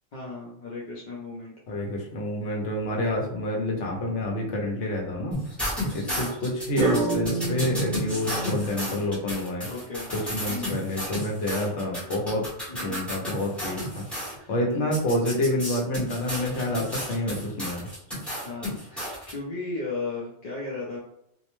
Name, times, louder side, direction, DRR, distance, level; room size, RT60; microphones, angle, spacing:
voice 1, 0.1-1.5 6.0-6.3 9.7-10.1 10.5-10.8 12.7-13.0 14.7-15.0 18.4-21.0, left 3 dB, 50° left, -5 dB, 0.6 m, -35 dB
voice 2, 1.7-5.4 5.9-9.7 10.1-14.0 14.5-17.9, left 1 dB, 75° left, -1 dB, 1.0 m, -28 dB
sound 1, 2.9-3.3 4.0-4.5 6.8-8.7, right 2 dB, 50° right, 0.7 m, -28 dB
sound 2, 5.3-14.3 14.9-19.3, equal, ahead, 0.8 m, -33 dB
2.6 x 2.0 x 3.0 m, 0.77 s
omnidirectional pair, 1.2 m